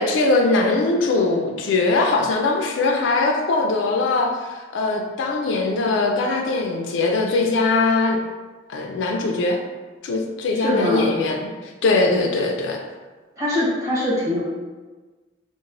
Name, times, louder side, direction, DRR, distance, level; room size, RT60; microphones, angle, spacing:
voice 1, 0.0-4.3 4.7-8.2 8.7-9.6 10.0-11.5 11.8-12.8, left 3 dB, 80° left, 1 dB, 0.3 m, -21 dB
voice 2, 10.6-11.1 13.4-14.4, left 1 dB, 15° right, -9 dB, 1.0 m, -22 dB
2.9 x 2.0 x 2.5 m, 1.3 s
head